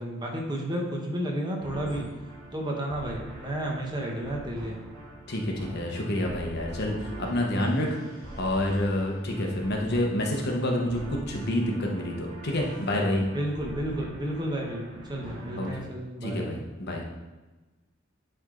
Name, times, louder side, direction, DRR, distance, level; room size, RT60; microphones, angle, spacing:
voice 1, 0.0-2.1 2.5-4.8 7.8-7.9 13.3-16.6, right 1 dB, 20° right, -1 dB, 1.1 m, -32 dB
sound 1, 1.6-15.8, right 1 dB, 45° right, 2.5 m, -43 dB
voice 2, 5.3-7.9 8.4-13.2 15.6-15.7 16.2-17.0, left 1 dB, 55° left, 1 dB, 1.1 m, -28 dB
10.5 x 3.6 x 3.8 m, 1.2 s
head